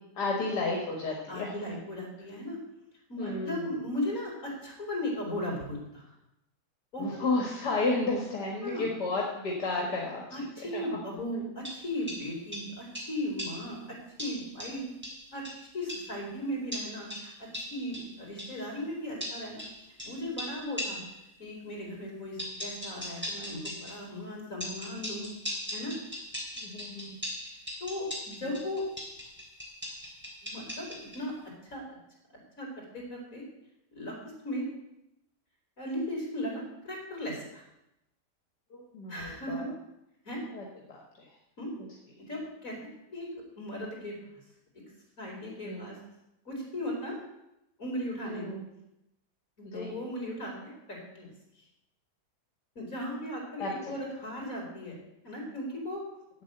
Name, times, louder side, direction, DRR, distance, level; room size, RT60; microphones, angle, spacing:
voice 1, 0.1-1.5 3.2-3.7 7.0-10.9 26.6-27.2 28.4-28.5 38.7-39.6 40.5-41.3 41.8-41.9 42.2-42.3 45.6-45.9 48.2-48.6 49.6-50.0 53.6-53.9, left 3 dB, 75° left, -1 dB, 2.3 m, -33 dB
voice 2, 1.3-2.6 3.1-6.1 6.9-7.1 8.3-8.9 10.3-13.8 14.2-14.8 15.3-15.4 15.7-19.6 20.0-21.0 21.4-25.3 25.7-25.9 27.8-28.8 30.4-31.3 31.6-31.8 32.6-33.4 33.9-34.2 34.4-34.7 35.8-37.6 39.1-39.7 40.2-40.4 41.6-41.7 42.2-42.8 43.1-43.3 43.6-44.1 45.2-46.0 46.5-47.2 47.8-48.4 49.6-51.3 52.8-55.0 55.2-56.0, left 1 dB, 55° left, -2 dB, 4.3 m, -37 dB
sound 1, 11.6-13.8 14.2-16.2 16.7-18.6 19.2-21.2 22.4-24.1 24.6-31.3, equal, 5° right, 3.2 m, -40 dB
8.9 x 8.2 x 8.0 m, 0.87 s
omnidirectional pair, 1.8 m